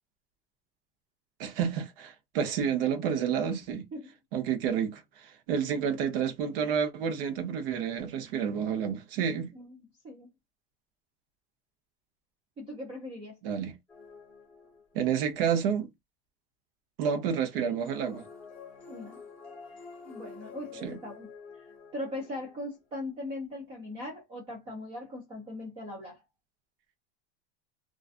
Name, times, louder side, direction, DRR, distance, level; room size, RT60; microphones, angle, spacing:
voice 1, 1.4-3.8 4.3-9.5 13.4-13.8 14.9-15.9 17.0-18.3 20.8-21.0, right 7 dB, 60° right, 0.8 m, -30 dB
voice 2, 9.5-10.3 12.6-13.4 18.9-19.2 20.0-21.3 21.9-26.2, left 1 dB, 15° right, 0.4 m, -40 dB
sound 1, 13.9-15.2 17.5-22.8, left 5 dB, 5° left, 0.8 m, -49 dB
2.4 x 2.3 x 2.4 m
supercardioid pair, 175°, 33 cm